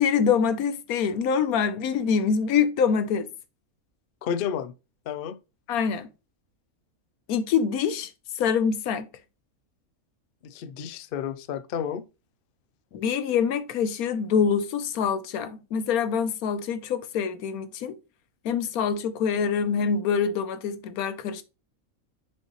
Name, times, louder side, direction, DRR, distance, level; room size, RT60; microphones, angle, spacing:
voice 1, 0.0-3.3 5.7-6.1 7.3-8.1 8.4-9.1 12.9-18.0 18.4-21.4, left 6 dB, 90° left, 1.2 m, -25 dB
voice 2, 4.2-4.7 5.1-5.4 10.4-12.1, left 8 dB, 60° left, 0.5 m, -31 dB
6.6 x 5.4 x 3.0 m
omnidirectional pair, 1.5 m